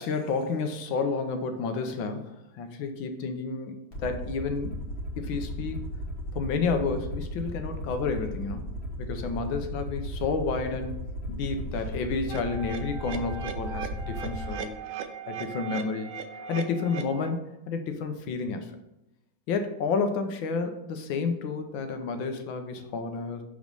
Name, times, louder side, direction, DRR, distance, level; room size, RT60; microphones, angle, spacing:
voice 1, 0.0-3.7 4.0-4.8 5.2-5.8 6.3-8.6 9.0-11.0 11.3-14.7 15.3-16.1 16.5-18.7 19.5-23.4, left 4 dB, 75° left, 7 dB, 1.5 m, -30 dB
Aircraft, 3.9-14.6, equal, 30° left, 1.3 m, -36 dB
sound 1, 12.3-17.3, right 6 dB, 90° right, 1.5 m, -38 dB
6.4 x 5.1 x 5.3 m, 0.90 s
omnidirectional pair, 2.3 m